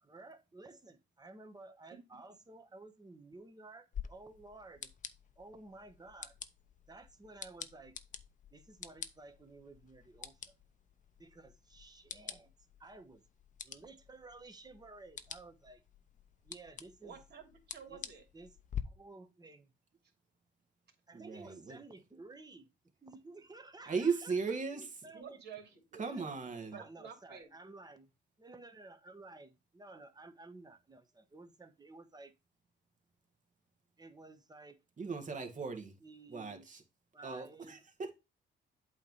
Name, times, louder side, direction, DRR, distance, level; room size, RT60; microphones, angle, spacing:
voice 1, 0.0-4.9 5.4-6.3 6.9-8.0 8.5-10.5 11.2-12.5 12.8-13.2 13.6-15.8 16.4-17.2 17.9-18.0 18.3-18.5 18.8-19.7 21.1-22.7 23.0-25.4 26.0-26.4 26.7-28.1 28.4-32.3 34.0-34.8 35.5-35.6 36.0-36.7 37.1-37.8, right 2 dB, 20° right, 1.2 m, -54 dB
sound 1, 3.9-18.8, left 8 dB, 40° left, 0.7 m, -49 dB
voice 2, 17.0-18.2 25.1-26.1 26.6-27.5, right 7 dB, 55° right, 2.9 m, -51 dB
voice 3, 21.1-21.8 23.9-24.9 26.0-26.8 35.0-35.9 36.3-36.8 37.2-38.1, right 5 dB, 40° right, 1.8 m, -37 dB
8.3 x 3.2 x 5.4 m
cardioid pair, 90°, 20 cm